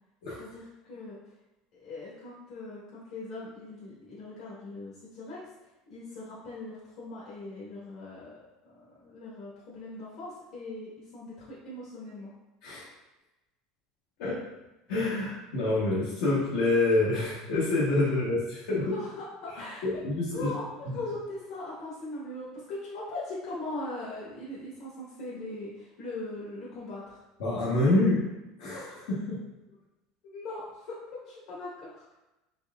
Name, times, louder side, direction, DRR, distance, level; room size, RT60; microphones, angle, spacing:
voice 1, 0.4-1.2 1.8-5.4 5.9-8.4 8.6-12.3 18.8-19.8 20.3-27.2 30.2-32.1, left 2 dB, 65° left, -8 dB, 1.2 m, -40 dB
voice 2, 14.9-18.9 19.8-20.5 27.4-28.2 28.6-29.4, left 2 dB, 85° left, -8 dB, 1.0 m, -27 dB
4.0 x 3.5 x 2.3 m, 1.0 s
supercardioid pair, 140°, 0 cm